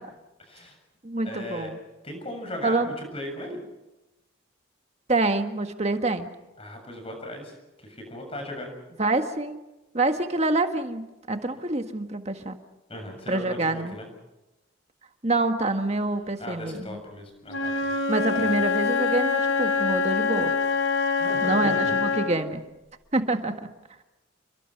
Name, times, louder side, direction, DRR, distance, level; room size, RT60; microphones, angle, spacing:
voice 1, 0.4-0.8 1.2-1.7 2.0-3.6 6.6-8.7 12.9-14.1 16.4-17.9 18.4-18.5 21.2-22.0, left 1 dB, 30° left, 4 dB, 7.3 m, -37 dB
voice 2, 1.0-1.8 2.6-2.9 5.1-6.3 9.0-9.6 9.9-12.6 13.3-14.0 15.2-17.0 18.1-20.5 21.4-22.6 23.1-23.7, right 2 dB, 30° right, 6 dB, 1.7 m, -26 dB
Wind instrument woodwind instrument, 17.5-22.4, left 5 dB, 85° left, 3.3 m, -25 dB
29.5 x 22.5 x 5.9 m, 1.0 s
head